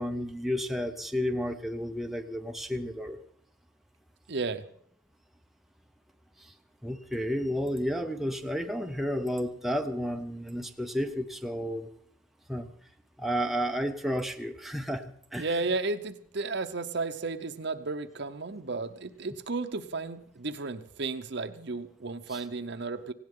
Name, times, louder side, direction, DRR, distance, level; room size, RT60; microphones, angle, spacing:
voice 1, 0.0-3.2 6.4-6.5 6.8-11.9 12.5-12.7 13.2-15.5 22.3-22.4, equal, ahead, 4 dB, 0.6 m, -32 dB
voice 2, 4.3-4.6 15.4-23.1, right 3 dB, 55° right, 10 dB, 0.8 m, -33 dB
18.0 x 17.0 x 3.7 m, 0.66 s
head